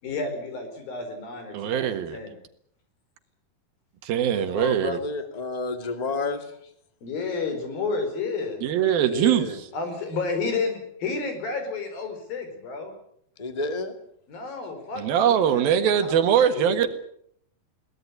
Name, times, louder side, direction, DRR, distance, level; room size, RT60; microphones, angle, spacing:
voice 1, 0.0-2.4 7.0-8.6 9.7-12.9 14.3-16.8, left 4 dB, 75° left, 7 dB, 6.5 m, -31 dB
voice 2, 1.5-2.2 4.0-5.0 8.6-9.6 15.0-16.9, right 9 dB, 85° right, 9 dB, 3.5 m, -22 dB
voice 3, 4.3-6.5 8.9-9.6 13.4-13.9, left 3 dB, 15° left, 7 dB, 1.6 m, -30 dB
22.0 x 18.5 x 8.3 m, 0.68 s
omnidirectional pair, 4.1 m